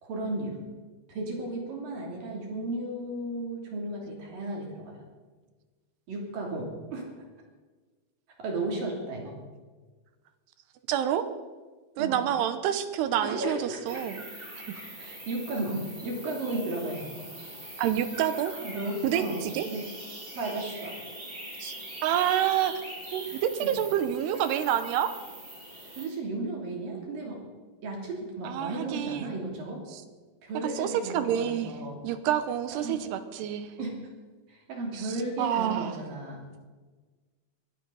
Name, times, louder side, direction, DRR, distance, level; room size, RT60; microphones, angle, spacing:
voice 1, 0.0-0.6 1.1-4.9 6.1-7.1 8.4-9.4 12.0-12.2 13.2-14.0 15.0-17.3 18.6-19.4 19.7-19.8 20.3-21.0 23.3-23.7 26.0-27.4 27.8-29.8 30.4-32.0 32.8-33.0 33.8-34.0 34.5-36.4, right 2 dB, 55° right, -1 dB, 4.5 m, -34 dB
voice 2, 10.9-11.2 12.0-14.3 14.6-14.8 17.8-18.5 19.0-19.7 21.6-21.7 22.0-22.7 23.1-25.1 28.4-29.3 29.9-30.0 30.6-31.8 32.0-33.7 34.9-36.0, right 10 dB, 80° right, 10 dB, 2.9 m, -28 dB
sound 1, 13.9-26.1, right 1 dB, 15° right, 4.0 m, -43 dB
21.5 x 16.0 x 4.0 m, 1.4 s
omnidirectional pair, 4.9 m